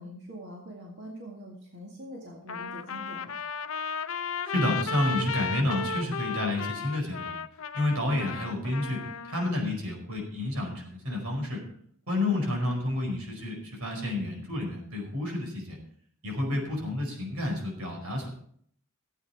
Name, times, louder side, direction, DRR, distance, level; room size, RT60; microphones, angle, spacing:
voice 1, 0.0-3.3 12.2-12.5 16.4-16.7, equal, 55° right, -1 dB, 2.0 m, -44 dB
Trumpet, 2.5-9.5, left 6 dB, 65° left, 0.6 m, -34 dB
voice 2, 4.4-7.3 7.7-11.6 12.1-15.8 16.2-18.3, left 1 dB, 90° right, 1 dB, 4.9 m, -30 dB
15.5 x 8.5 x 4.6 m, 0.62 s
head